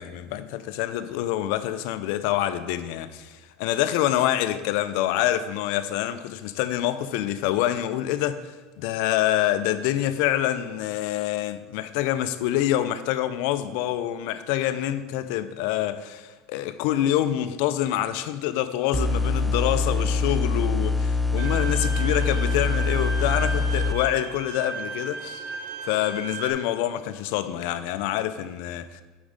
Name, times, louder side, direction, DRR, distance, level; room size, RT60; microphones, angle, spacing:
voice 1, 0.0-8.4 8.8-25.5 25.8-29.0, left 12 dB, 70° left, 0.5 m, -26 dB
sound 1, 18.9-23.9, left 3 dB, ahead, 0.3 m, -24 dB
Bowed string instrument, 21.4-26.5, right 4 dB, 60° right, 0.8 m, -35 dB
7.0 x 5.2 x 5.1 m
supercardioid pair, 130°, 0 cm